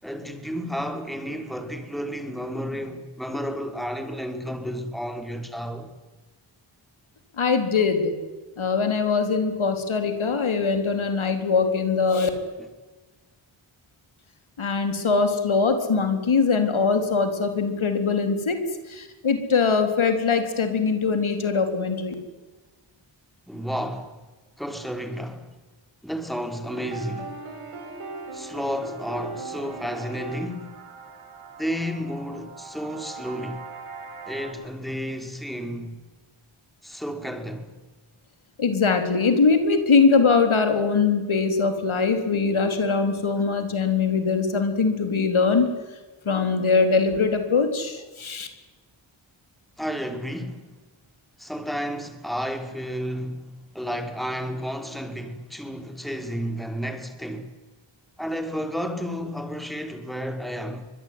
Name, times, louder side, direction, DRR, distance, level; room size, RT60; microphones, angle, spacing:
voice 1, 0.0-5.9 23.5-24.1 24.6-25.5 26.0-27.4 28.3-30.8 31.6-33.6 34.3-36.0 36.8-37.7 49.8-50.7 51.4-57.5 58.2-60.9, equal, ahead, 5.3 m, -32 dB
voice 2, 7.4-8.1 8.6-12.3 14.6-18.6 18.9-22.1 38.6-45.7 46.3-48.5, left 4 dB, 70° left, 4.1 m, -22 dB
sound 1, 26.7-34.5, right 3 dB, 85° right, 6.5 m, -39 dB
24.0 x 20.5 x 9.8 m
cardioid pair, 40°, 50 cm